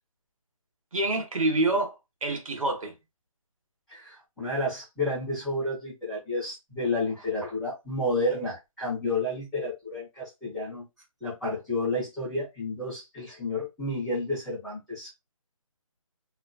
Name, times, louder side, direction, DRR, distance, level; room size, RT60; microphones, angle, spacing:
voice 1, 0.9-2.9, right 2 dB, 70° right, 0.8 m, -27 dB
voice 2, 3.9-10.9 11.2-15.1, left 2 dB, ahead, 0.8 m, -31 dB
2.4 x 2.2 x 2.3 m
hypercardioid pair, 165°, 18 cm